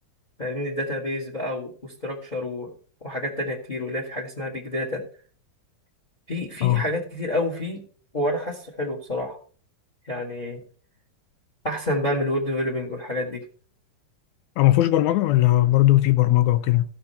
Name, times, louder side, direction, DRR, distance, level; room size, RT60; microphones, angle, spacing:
voice 1, 0.4-2.7 3.0-5.0 6.3-7.8 8.1-9.4 10.0-10.6 11.6-13.4, left 1 dB, 20° left, 1.4 m, -28 dB
voice 2, 14.6-16.8, left 15 dB, 90° left, 2.1 m, -18 dB
15.5 x 5.6 x 4.2 m
omnidirectional pair, 3.3 m